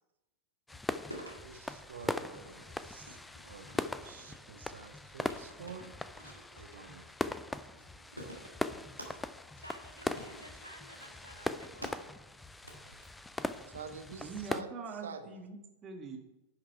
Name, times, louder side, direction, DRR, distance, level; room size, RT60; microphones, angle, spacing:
sound 1, 0.7-14.6, left 2 dB, 5° left, 0.4 m, -40 dB
sound 2, 1.1-14.3, equal, 90° right, 1.6 m, -53 dB
voice 1, 1.4-5.9 6.5-7.1 13.7-14.7 15.0-15.3, right 6 dB, 65° right, 8 dB, 0.9 m, -48 dB
voice 2, 9.5-12.0, equal, 90° left, 5 dB, 1.3 m, -53 dB
voice 3, 14.2-16.2, right 4 dB, 25° right, 3 dB, 1.5 m, -43 dB
10.5 x 5.8 x 4.6 m, 0.95 s
figure-of-eight pair, 90°, 0 cm